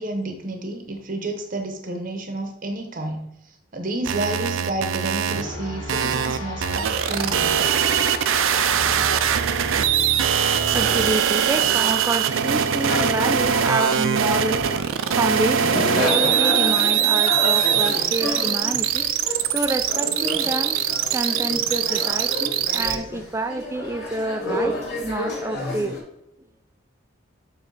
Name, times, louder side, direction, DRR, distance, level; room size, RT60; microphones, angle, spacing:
voice 1, 0.0-3.3 3.7-7.7, right 2 dB, 40° right, 0.7 m, -30 dB
sound 1, 4.0-5.4 5.9-22.9, right 8 dB, 80° right, 0.4 m, -22 dB
sound 2, 5.3-11.1, equal, 75° left, 1.4 m, -33 dB
voice 2, 10.7-19.1 19.5-24.8 25.0-26.0, right 2 dB, 15° right, 0.3 m, -28 dB
sound 3, 12.7-26.0, left 1 dB, 50° left, 2.0 m, -30 dB
7.1 x 3.1 x 4.6 m
head